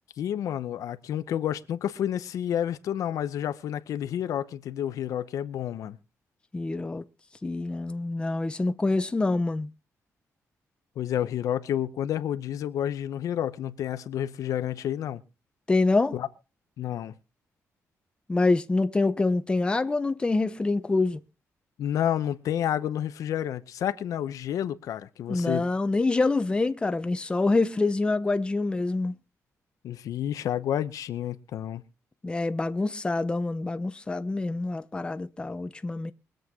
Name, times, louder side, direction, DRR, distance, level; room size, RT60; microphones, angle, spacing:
voice 1, 0.2-6.0 11.0-15.2 16.1-16.3 16.8-17.1 21.8-25.7 29.8-31.8, left 10 dB, 85° left, 0.9 m, -30 dB
voice 2, 6.5-7.0 7.4-9.7 15.7-16.2 18.3-21.2 25.3-29.1 32.2-36.1, left 3 dB, 15° left, 0.8 m, -26 dB
23.5 x 7.9 x 3.7 m
cardioid pair, 130°, 6 cm